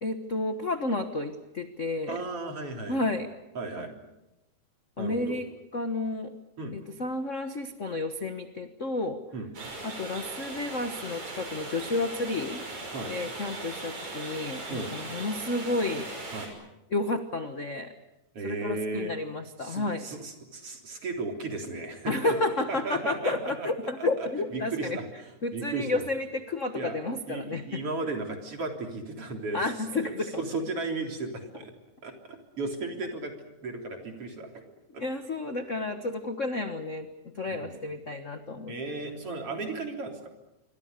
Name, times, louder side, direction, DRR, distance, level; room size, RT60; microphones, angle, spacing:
voice 1, 0.0-2.2 2.9-3.3 3.8-3.9 5.0-5.5 5.7-6.3 6.7-9.2 9.8-12.6 13.1-16.1 16.9-17.9 18.4-20.1 22.0-25.0 25.4-27.8 29.5-30.4 35.0-37.1 37.3-38.7, left 2 dB, 50° left, 8 dB, 0.9 m, -31 dB
voice 2, 2.1-3.1 3.5-3.9 5.0-5.4 6.6-6.8 9.3-9.5 12.9-13.1 14.7-14.9 16.3-16.5 18.3-19.1 19.6-22.3 22.7-23.7 24.0-26.0 26.7-27.0 27.3-29.6 30.0-31.7 32.0-33.3 33.6-34.6 34.9-35.0 37.5-37.8 38.7-40.3, right 3 dB, 45° right, 3 dB, 4.4 m, -35 dB
sound 1, 9.5-16.5, right 2 dB, 70° right, 7.2 m, -39 dB
27.0 x 24.5 x 6.8 m, 0.97 s
omnidirectional pair, 3.5 m